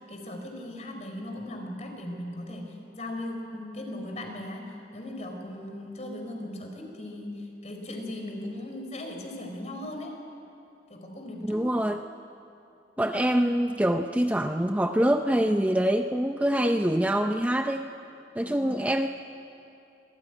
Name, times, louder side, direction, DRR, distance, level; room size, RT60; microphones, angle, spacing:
voice 1, 0.0-10.2 10.9-11.8 18.4-18.9, left 1 dB, 40° left, 3 dB, 4.1 m, -38 dB
voice 2, 11.5-12.0 13.0-17.9 18.4-19.1, right 1 dB, 10° right, 6 dB, 0.5 m, -25 dB
25.0 x 18.5 x 9.8 m, 2.6 s
head